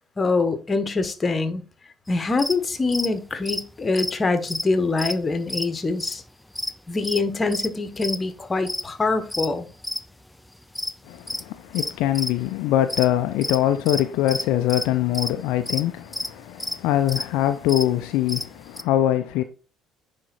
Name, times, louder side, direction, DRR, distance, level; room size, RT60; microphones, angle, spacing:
voice 1, 0.2-1.6 2.1-6.2 6.9-9.7, left 3 dB, 25° left, 1.1 m, -24 dB
sound 1, 2.3-2.6 2.9-3.1 3.4-5.2 5.5-5.7 6.0-6.3 6.6-7.2 7.5-7.7 8.0-8.8 9.3-10.1 10.4-12.5 12.8-13.1 13.3-18.8, left 1 dB, 5° left, 0.5 m, -30 dB
voice 2, 11.0-19.4, left 12 dB, 60° left, 0.5 m, -23 dB
9.9 x 3.7 x 4.1 m
figure-of-eight pair, 55°, 0 cm